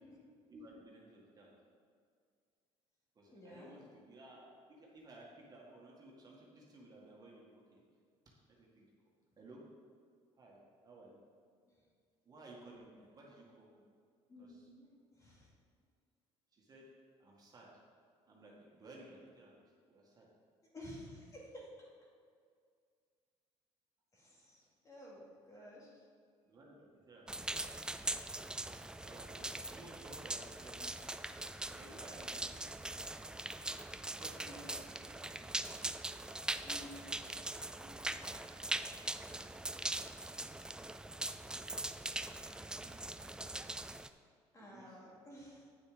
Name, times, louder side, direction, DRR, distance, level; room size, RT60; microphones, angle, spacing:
voice 1, 0.5-1.5 3.2-7.8 8.3-8.9 9.4-9.7 10.4-11.2 12.3-13.8 14.4-14.7 16.5-16.9 17.2-17.7 18.3-20.3 26.4-27.6 29.0-31.4 31.7-32.8 34.1-35.3 36.2-37.5 37.8-38.0 39.2-40.1 42.6-43.2 44.6-45.2, right 2 dB, 35° right, -3 dB, 2.0 m, -57 dB
voice 2, 3.3-3.7 11.8-11.9 14.3-15.5 20.7-21.9 24.1-26.1 34.4-34.6 36.6-37.1 44.5-45.7, equal, 25° left, -4 dB, 2.6 m, -53 dB
sound 1, 27.3-44.1, right 2 dB, 5° right, 0.3 m, -42 dB
9.2 x 6.6 x 5.1 m, 2.2 s
cardioid pair, 120°, 12 cm